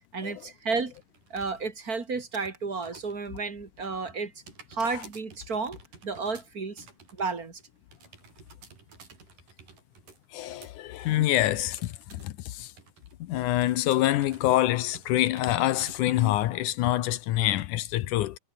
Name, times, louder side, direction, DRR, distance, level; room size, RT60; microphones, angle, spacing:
voice 1, 0.1-0.9 1.3-4.3 4.7-6.8 7.2-7.6, right 4 dB, 30° right, 2.3 m, -32 dB
sound 1, 0.8-1.6 1.9-3.4 3.6-12.4 12.7-13.2 13.6-16.6 17.0-17.1 17.5-17.6, right 5 dB, 75° right, 6.6 m, -52 dB
voice 2, 10.3-12.7 13.2-18.4, left 14 dB, 75° left, 2.2 m, -26 dB
omnidirectional pair, 3.9 m